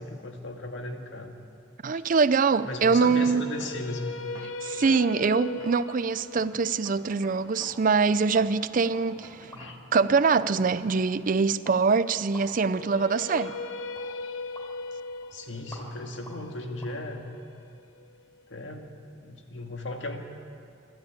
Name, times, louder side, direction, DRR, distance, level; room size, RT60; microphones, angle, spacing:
voice 1, 0.0-1.4 1.9-2.0 2.6-4.1 9.5-9.8 15.3-17.3 18.5-18.9 19.2-20.2, left 2 dB, 65° left, 2.0 m, -36 dB
voice 2, 1.8-3.4 4.6-9.5 9.9-13.6, right 4 dB, 40° right, 0.4 m, -24 dB
sound 1, 2.9-3.9 4.4-5.9 6.4-7.9 8.4-9.9 10.4-10.7, right 1 dB, 20° right, 2.5 m, -49 dB
sound 2, 3.2-9.3 12.5-18.6, left 3 dB, 80° left, 0.9 m, -39 dB
sound 3, 4.8-17.0, equal, 10° left, 3.8 m, -51 dB
25.5 x 12.5 x 8.6 m
head